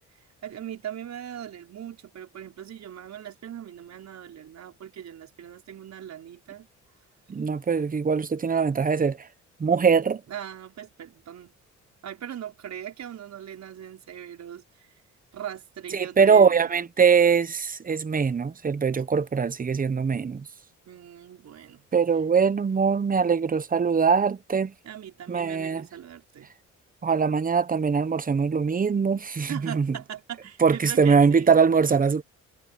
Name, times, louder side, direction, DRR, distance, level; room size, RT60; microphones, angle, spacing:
voice 1, 0.4-6.7 10.3-11.5 12.0-14.9 15.3-16.8 19.0-19.1 20.9-21.8 24.8-26.5 29.5-31.6, right 10 dB, 65° right, 5.5 m, -40 dB
voice 2, 7.3-9.3 9.6-10.2 15.9-20.4 21.9-24.7 25.3-25.8 27.0-30.0 30.6-32.2, right 6 dB, 30° right, 1.0 m, -22 dB
cardioid pair, 90°, 30 cm